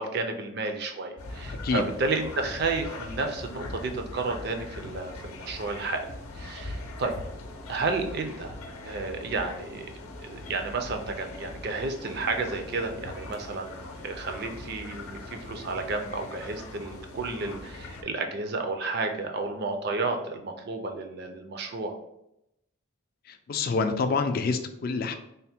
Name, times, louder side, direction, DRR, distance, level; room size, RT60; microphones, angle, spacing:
voice 1, 0.0-6.1 6.3-7.2 7.7-8.6 8.8-13.7 14.0-22.0, right 3 dB, 45° right, 5 dB, 0.4 m, -32 dB
sound 1, 1.2-18.0, left 2 dB, 85° left, 0.6 m, -41 dB
voice 2, 23.5-25.1, left 4 dB, 45° left, 7 dB, 0.3 m, -26 dB
3.4 x 2.1 x 4.2 m, 0.82 s
head